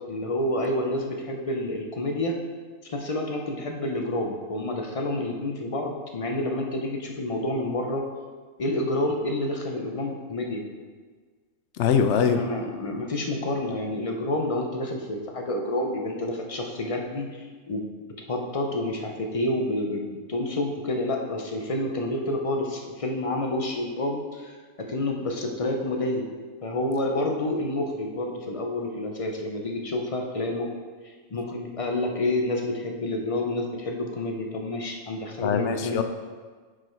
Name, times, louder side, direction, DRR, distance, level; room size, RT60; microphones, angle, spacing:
voice 1, 0.1-2.4 2.9-8.1 8.6-10.6 12.3-17.8 18.3-26.2 26.6-30.7 31.3-36.0, left 1 dB, 45° left, 1 dB, 0.4 m, -29 dB
voice 2, 11.8-12.4 35.4-36.0, left 7 dB, 65° left, 7 dB, 0.8 m, -22 dB
6.2 x 4.9 x 4.4 m, 1.5 s
omnidirectional pair, 1.5 m